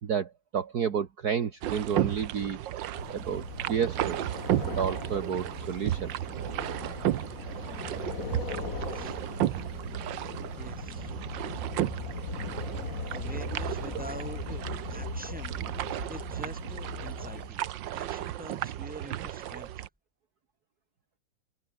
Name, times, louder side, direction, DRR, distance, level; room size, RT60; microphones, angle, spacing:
voice 1, 0.0-2.6 3.1-6.2, right 7 dB, 50° right, 1.9 m, -31 dB
sound 1, 1.6-19.9, right 12 dB, 70° right, 1.5 m, -34 dB
sound 2, 2.9-17.5, left 4 dB, 40° left, 2.7 m, -39 dB
voice 2, 10.6-11.2 13.1-14.6 14.9-15.6 16.1-17.6 17.9-19.9, right 1 dB, 5° right, 3.2 m, -45 dB
omnidirectional pair, 2.2 m